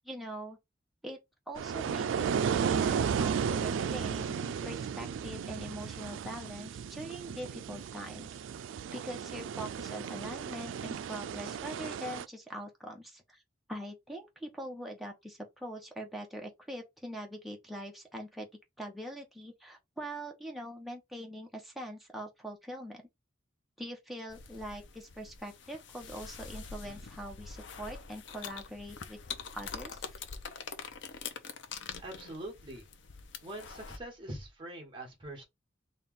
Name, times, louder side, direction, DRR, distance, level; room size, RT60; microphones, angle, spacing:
voice 1, 0.0-0.6 1.0-1.2 1.5-8.4 8.9-13.4 13.7-18.5 18.8-23.0 23.8-29.2 29.5-30.0, equal, ahead, 0.9 m, -43 dB
sound 1, 1.6-12.3, right 7 dB, 80° right, 0.3 m, -34 dB
sound 2, 24.3-34.0, left 5 dB, 70° left, 0.6 m, -45 dB
voice 2, 32.0-32.9 33.4-35.4, right 1 dB, 25° right, 1.6 m, -43 dB
4.2 x 2.4 x 3.6 m
head